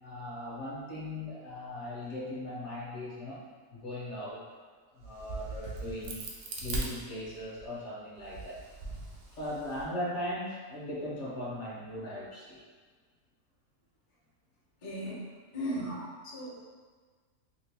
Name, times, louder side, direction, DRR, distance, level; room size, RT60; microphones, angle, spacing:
voice 1, 0.0-3.4 3.7-4.4 4.9-6.2 6.6-8.6 9.3-12.6 15.8-16.0, left 1 dB, 60° left, -5 dB, 0.9 m, -38 dB
Crack, 5.0-7.7 8.2-9.8, right 3 dB, 75° right, 0.5 m, -39 dB
voice 2, 14.8-15.2 15.5-16.0 16.3-16.7, equal, 40° left, -6 dB, 0.4 m, -36 dB
2.8 x 2.6 x 3.3 m, 1.5 s
omnidirectional pair, 1.6 m